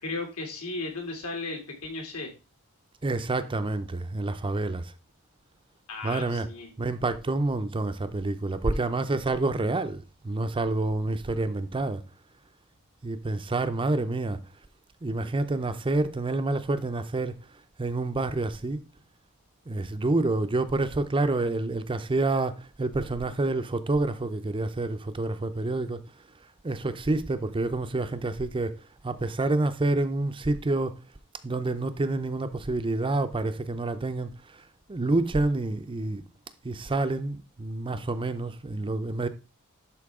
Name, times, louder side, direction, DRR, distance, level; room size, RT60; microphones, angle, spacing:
voice 1, 0.0-2.3 5.9-6.7, left 3 dB, 75° left, 2.6 m, -35 dB
voice 2, 3.0-4.9 6.0-6.5 6.8-12.0 13.0-14.4 15.0-17.4 17.8-18.8 19.7-26.0 26.6-28.8 29.0-30.9 31.4-34.6 34.9-36.2 36.6-39.3, right 2 dB, 25° right, 0.5 m, -28 dB
11.5 x 4.5 x 3.6 m
head